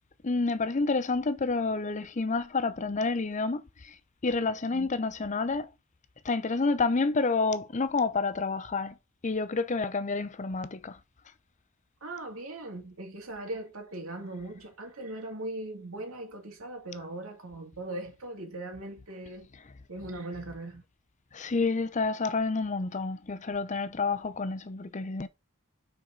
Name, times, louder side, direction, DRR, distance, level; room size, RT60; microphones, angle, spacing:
voice 1, 0.2-3.9 4.2-5.7 6.2-8.9 9.2-11.0 21.3-25.3, left 3 dB, 35° left, 0.6 m, -29 dB
voice 2, 12.0-19.5 19.9-20.8, right 2 dB, 85° right, 2.4 m, -39 dB
6.2 x 4.7 x 5.2 m
head